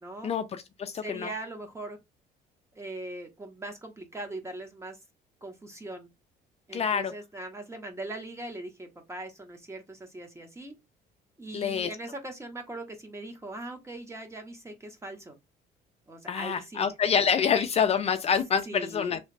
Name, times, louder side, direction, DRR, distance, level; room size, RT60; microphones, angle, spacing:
voice 1, 0.2-1.3 6.7-7.1 11.5-11.9 16.3-19.2, left 7 dB, 40° left, 0.4 m, -27 dB
voice 2, 1.0-2.0 2.7-5.0 5.4-6.1 6.7-10.7 11.4-15.4 16.1-16.9 18.7-19.1, right 2 dB, 15° right, 1.1 m, -40 dB
3.2 x 2.9 x 3.3 m
cardioid pair, 110°, 17 cm